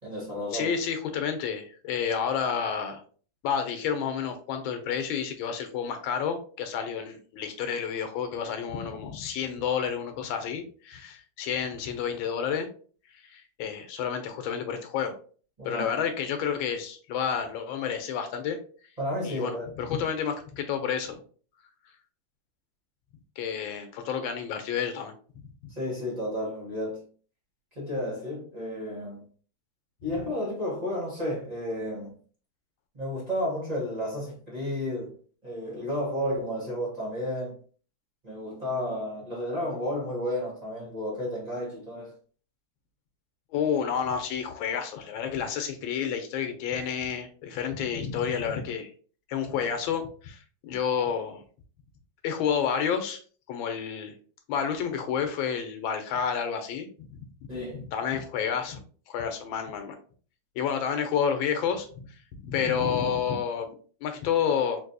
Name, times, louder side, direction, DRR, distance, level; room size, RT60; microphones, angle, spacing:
voice 1, 0.0-0.8 15.6-15.9 19.0-19.7 25.7-27.0 27.7-29.2 30.0-32.1 32.9-35.2 35.4-37.6 38.2-42.1 57.5-57.8, left 1 dB, 25° right, 1.0 m, -32 dB
voice 2, 0.5-3.0 3.4-12.7 13.1-15.1 15.6-18.6 19.2-21.2 23.4-25.5 43.5-48.9 49.3-51.4 52.2-53.2 53.5-54.2 54.5-57.2 57.5-57.6 57.9-59.9 60.6-64.8, left 7 dB, 90° left, 1.4 m, -30 dB
3.9 x 2.6 x 2.6 m
omnidirectional pair, 2.1 m